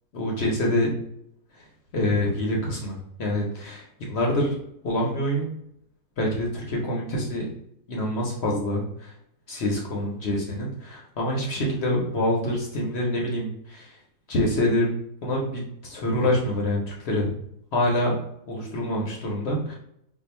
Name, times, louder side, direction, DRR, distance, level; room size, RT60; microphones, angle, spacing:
voice 1, 0.1-0.9 1.5-1.6 1.9-4.6 4.8-5.5 6.2-7.5 7.9-9.1 9.5-14.0 14.3-14.9 15.2-17.3 17.7-18.2 18.5-19.8, left 1 dB, 55° left, -2 dB, 0.7 m, -26 dB
2.7 x 2.3 x 4.1 m, 0.76 s
omnidirectional pair, 1.7 m